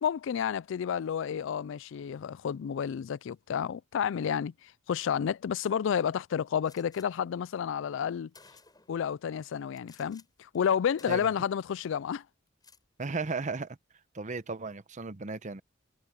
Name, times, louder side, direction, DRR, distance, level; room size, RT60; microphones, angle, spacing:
voice 1, 0.0-8.3 8.9-12.2, left 8 dB, 70° left, 0.3 m, -31 dB
Gunshot gunfire, 6.6-7.1 7.9-8.0 8.3-9.0 9.7-10.3 10.5-10.7 11.0-11.7 12.5-12.8, left 4 dB, 20° left, 7.3 m, -57 dB
voice 2, 13.0-13.8 14.1-15.6, right 4 dB, 40° right, 0.8 m, -35 dB
head